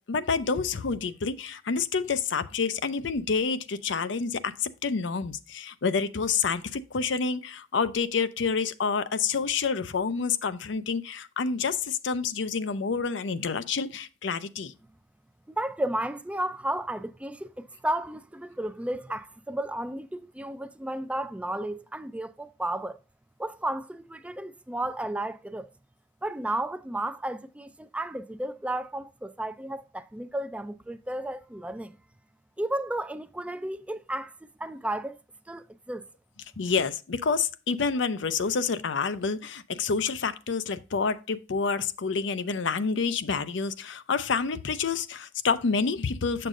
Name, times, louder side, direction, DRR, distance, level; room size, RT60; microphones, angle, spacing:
voice 1, 0.0-14.7 36.6-46.5, left 5 dB, 85° left, 0.6 m, -28 dB
voice 2, 15.6-23.0 23.4-25.7 26.2-32.0 32.6-34.3 34.6-35.2 35.5-36.1, right 1 dB, 5° right, 0.3 m, -33 dB
7.4 x 6.6 x 2.5 m
head